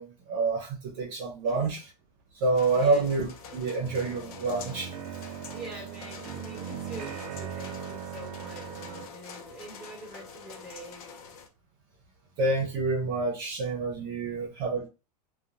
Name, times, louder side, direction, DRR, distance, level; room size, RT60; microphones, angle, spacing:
voice 1, 0.0-1.8 2.3-4.9 12.4-14.9, right 3 dB, 45° right, 0.9 m, -28 dB
voice 2, 1.4-1.8 2.7-3.1 5.5-11.0 14.2-14.3, right 1 dB, ahead, 1.7 m, -45 dB
sound 1, 2.5-11.5, left 5 dB, 65° left, 0.6 m, -46 dB
sound 2, 3.2-9.1, right 8 dB, 65° right, 0.5 m, -40 dB
2.9 x 2.3 x 2.5 m
supercardioid pair, 130°, 20 cm